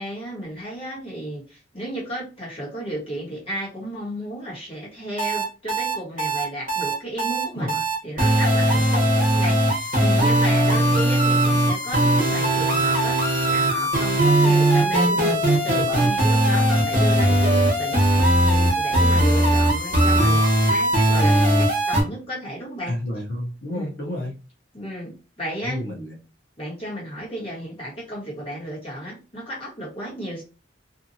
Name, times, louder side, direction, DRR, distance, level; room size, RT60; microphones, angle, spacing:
voice 1, 0.0-7.8 8.0-13.2 13.4-18.0 18.4-22.9 23.7-23.9 24.7-25.8 26.6-30.4, equal, 30° left, 1.3 m, -33 dB
sound 1, 5.2-22.0, right 1 dB, 40° right, 1.0 m, -19 dB
voice 2, 10.7-11.1 22.9-24.3 25.6-26.2, left 1 dB, 55° left, 0.7 m, -31 dB
2.7 x 2.4 x 2.6 m
head